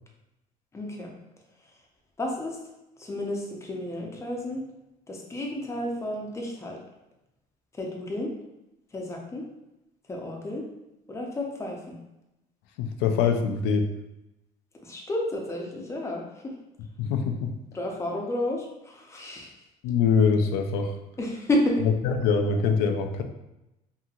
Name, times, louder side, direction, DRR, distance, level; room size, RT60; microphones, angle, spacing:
voice 1, 0.7-1.1 2.2-2.6 3.0-4.6 5.1-6.8 7.7-8.3 8.9-9.4 10.1-10.6 11.1-12.0 14.8-16.5 17.7-19.5 21.2-21.8, left 1 dB, 15° left, 0 dB, 0.6 m, -31 dB
voice 2, 12.8-13.9 17.0-17.5 19.8-20.9 22.0-23.2, left 5 dB, 85° left, 6 dB, 0.4 m, -24 dB
2.8 x 2.7 x 2.4 m, 0.92 s
cardioid pair, 110°, 16 cm